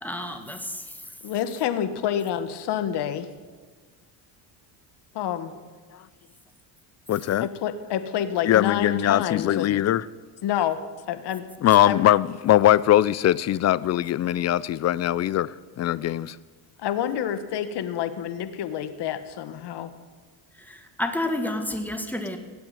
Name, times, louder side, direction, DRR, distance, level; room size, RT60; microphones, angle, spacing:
voice 1, 0.0-1.0 20.6-22.4, left 1 dB, 5° left, 1.9 m, -30 dB
voice 2, 1.2-3.3 5.1-5.5 7.4-9.8 10.4-10.8 11.1-11.4 11.9-12.0 16.8-19.9, left 10 dB, 55° left, 1.5 m, -28 dB
voice 3, 7.1-7.5 8.5-10.0 11.6-16.4, left 12 dB, 35° left, 0.4 m, -21 dB
19.0 x 7.8 x 9.1 m
cardioid pair, 110°, 48 cm